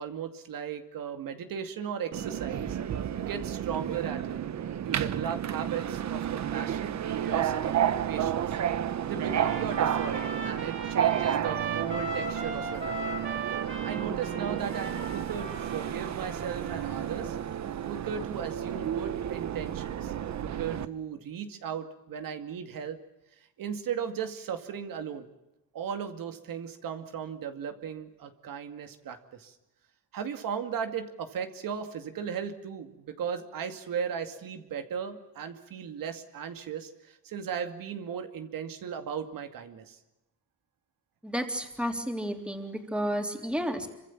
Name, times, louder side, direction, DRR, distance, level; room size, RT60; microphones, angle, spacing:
voice 1, 0.0-2.8 3.2-4.4 4.8-8.6 9.0-13.0 13.8-17.4 17.8-20.1 20.4-23.0 23.6-25.3 25.7-29.5 30.1-40.0, right 7 dB, 70° right, 7 dB, 2.4 m, -36 dB
Subway metro underground, 2.1-20.9, right 10 dB, 50° right, 1.2 m, -31 dB
Trumpet, 9.2-17.3, right 3 dB, 35° right, 5.8 m, -38 dB
voice 2, 41.2-43.9, equal, 5° right, 4 dB, 3.5 m, -31 dB
27.0 x 25.0 x 7.3 m, 0.94 s
cardioid pair, 140°, 35 cm